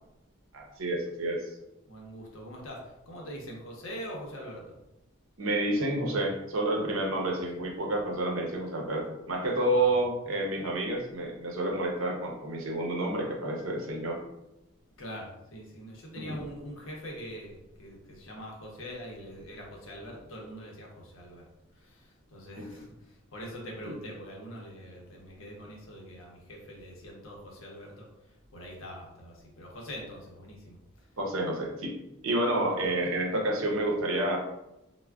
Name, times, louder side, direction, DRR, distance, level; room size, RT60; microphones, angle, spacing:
voice 1, 0.5-1.4 5.4-14.2 16.1-16.4 22.6-22.7 23.9-24.0 31.2-32.0 32.2-34.4, right 1 dB, 80° right, 1 dB, 0.6 m, -29 dB
voice 2, 1.9-4.6 7.1-7.4 9.7-10.1 15.0-21.5 21.7-28.1 28.5-30.8 32.6-33.0, equal, 75° left, -1 dB, 0.7 m, -43 dB
3.3 x 2.1 x 2.3 m, 0.91 s
head